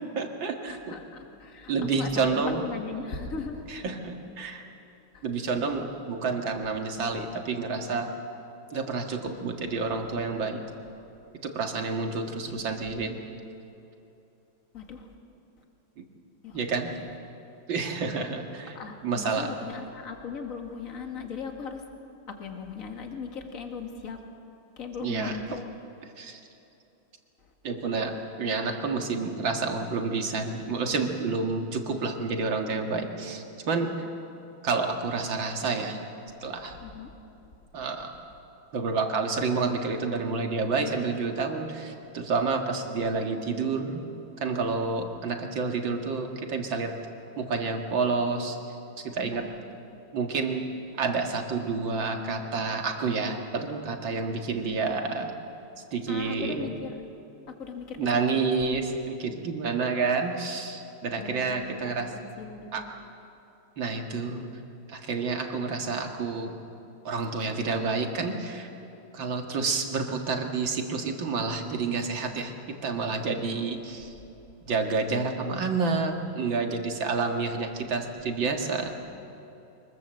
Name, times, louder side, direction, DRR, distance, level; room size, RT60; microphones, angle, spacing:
voice 1, 0.2-1.0 1.7-2.6 3.7-4.6 5.2-8.1 8.7-10.6 11.4-13.2 16.0-16.1 16.5-16.9 17.7-18.8 19.0-19.5 25.0-25.6 26.2-26.4 27.6-33.9 34.6-36.0 36.4-36.8 37.7-38.1 38.7-44.0 44.4-46.9 47.4-49.5 50.1-50.7 51.0-55.3 55.9-56.7 58.0-62.1 62.7-62.8 63.8-64.5 64.9-66.5 67.0-68.7 69.1-72.5 72.8-74.1 74.7-78.9, right 4 dB, 65° right, 3 dB, 2.6 m, -29 dB
voice 2, 0.7-3.7 5.1-5.2 14.7-15.2 16.4-16.9 18.0-18.2 18.8-21.9 22.3-24.2 24.8-25.7 27.4-27.5 36.8-37.1 45.0-45.1 49.2-49.6 54.4-54.8 56.1-57.0 57.6-58.5 61.2-62.1 62.4-62.9 78.1-78.2, left 5 dB, 40° left, 4 dB, 2.2 m, -39 dB
24.0 x 21.0 x 7.7 m, 2.9 s
omnidirectional pair, 2.3 m